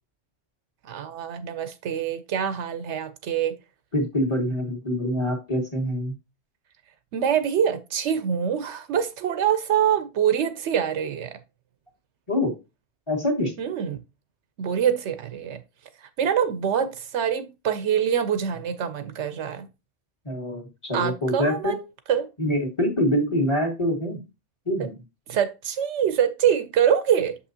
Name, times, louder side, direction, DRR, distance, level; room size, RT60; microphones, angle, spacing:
voice 1, 0.9-3.6 7.1-11.4 13.6-14.0 14.6-15.6 16.2-19.7 20.9-21.8 22.1-22.3 24.8-24.9 25.3-27.4, right 8 dB, 75° right, 0.9 m, -25 dB
voice 2, 3.9-6.1 12.3-12.5 13.1-13.5 20.3-21.7 22.4-24.2 24.7-24.9, equal, 25° left, 1.7 m, -25 dB
6.8 x 5.5 x 2.7 m
omnidirectional pair, 1.2 m